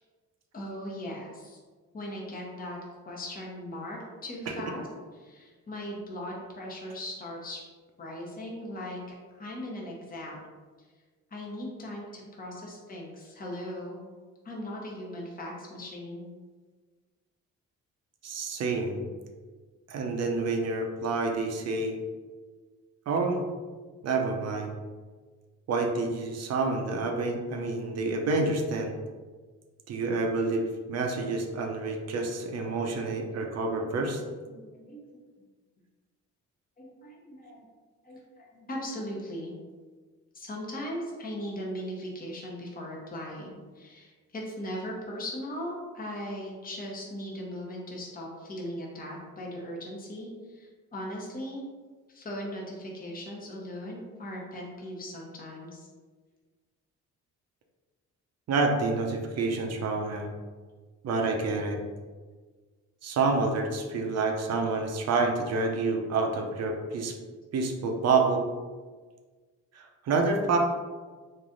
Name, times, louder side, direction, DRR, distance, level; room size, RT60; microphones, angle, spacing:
voice 1, 0.5-1.6 1.9-2.8 3.1-4.8 5.2-7.6 8.0-9.0 9.3-10.4 11.3-14.0 14.4-16.3 32.6-33.0 33.3-33.5 33.8-35.2 36.8-37.7 38.0-39.5 40.3-51.6 52.1-55.9, equal, 30° left, -2 dB, 0.9 m, -39 dB
voice 2, 18.2-19.0 19.9-22.0 23.1-23.5 24.0-24.7 25.7-28.9 29.9-34.2 58.5-60.3 61.0-61.8 63.0-67.1 67.5-68.5 69.7-70.6, right 3 dB, 55° right, 3 dB, 0.6 m, -28 dB
3.1 x 2.6 x 3.8 m, 1.4 s
cardioid pair, 90°, 30 cm